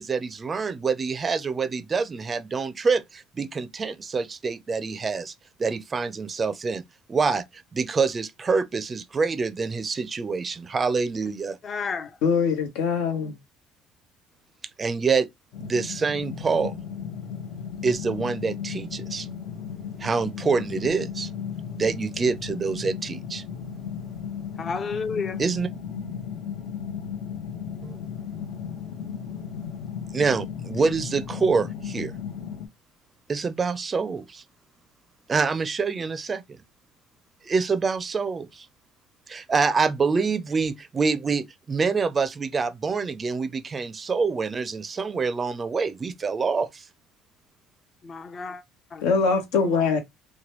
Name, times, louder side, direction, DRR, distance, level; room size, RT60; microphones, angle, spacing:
voice 1, 0.0-5.3 5.6-6.8 7.1-7.4 7.7-11.6 14.8-15.3 15.6-16.8 17.8-19.3 20.0-21.3 21.7-23.4 25.4-25.7 27.8-28.0 30.1-32.1 33.3-34.4 35.3-36.6 37.4-38.7 39.3-46.9, right 4 dB, 30° right, 0.4 m, -26 dB
voice 2, 11.6-12.1 24.6-25.4 48.0-48.6 48.9-49.1, left 5 dB, 35° left, 0.5 m, -31 dB
voice 3, 12.2-13.4 49.0-50.0, left 5 dB, 90° left, 1.0 m, -22 dB
sound 1, 15.5-32.7, left 7 dB, 65° left, 0.8 m, -35 dB
3.0 x 2.2 x 3.0 m
cardioid pair, 105°, 0 cm